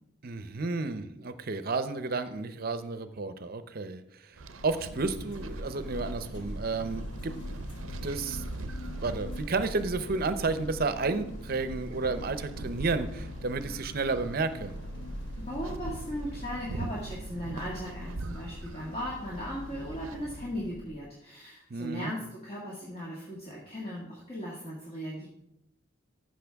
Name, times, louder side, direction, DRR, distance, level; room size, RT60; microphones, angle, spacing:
voice 1, 0.2-4.4 4.6-7.3 8.0-8.4 9.0-14.7 21.7-22.1, right 3 dB, 50° right, 11 dB, 0.7 m, -32 dB
sound 1, 4.4-21.0, equal, 60° left, 1.0 m, -41 dB
sound 2, 4.4-20.4, right 3 dB, 85° right, 0.6 m, -45 dB
voice 2, 15.4-25.3, equal, 30° left, -5 dB, 1.9 m, -38 dB
13.5 x 6.4 x 3.5 m, 0.81 s
head